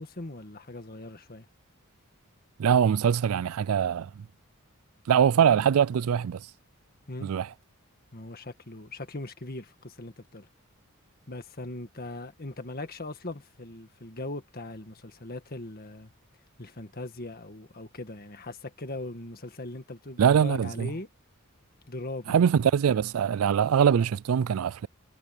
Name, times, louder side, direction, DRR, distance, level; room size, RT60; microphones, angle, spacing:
voice 1, 0.0-1.5 7.1-7.3 8.1-10.5 11.3-16.1 16.6-21.1 21.9-22.4, left 2 dB, 45° left, 1.8 m, -40 dB
voice 2, 2.6-4.2 5.1-6.5 7.2-7.5 20.2-20.9 22.3-24.9, right 8 dB, 80° right, 0.4 m, -23 dB
head